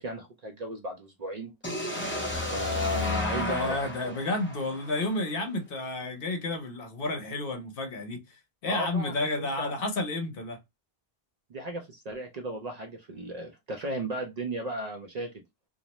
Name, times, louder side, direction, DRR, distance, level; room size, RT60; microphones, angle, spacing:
voice 1, 0.0-1.5 2.3-3.8 4.0-4.1 8.7-9.7 11.5-15.4, equal, 55° right, 0.5 m, -35 dB
sound 1, 1.6-5.5, left 2 dB, 15° left, 0.6 m, -33 dB
voice 2, 2.9-10.6, left 2 dB, 65° left, 0.8 m, -31 dB
2.5 x 2.0 x 2.8 m
omnidirectional pair, 1.1 m